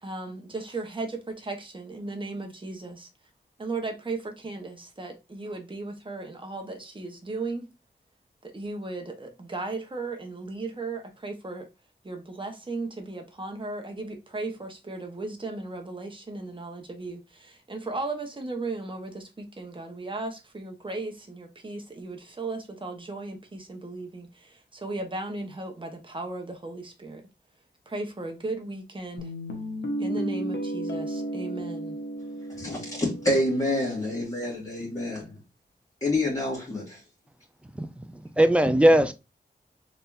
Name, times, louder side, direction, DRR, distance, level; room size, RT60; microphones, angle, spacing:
voice 1, 0.0-3.1 3.6-7.7 8.4-11.7 12.0-27.3 27.9-29.3 30.0-32.0, right 2 dB, 30° right, 1.1 m, -36 dB
Guitar, 29.2-34.2, right 1 dB, 80° left, 0.9 m, -34 dB
voice 2, 32.6-35.2 36.0-37.0, left 1 dB, 20° left, 2.1 m, -27 dB
voice 3, 37.7-39.1, right 1 dB, 5° right, 0.6 m, -20 dB
4.1 x 3.4 x 2.6 m
wide cardioid pair, 70°, 18 cm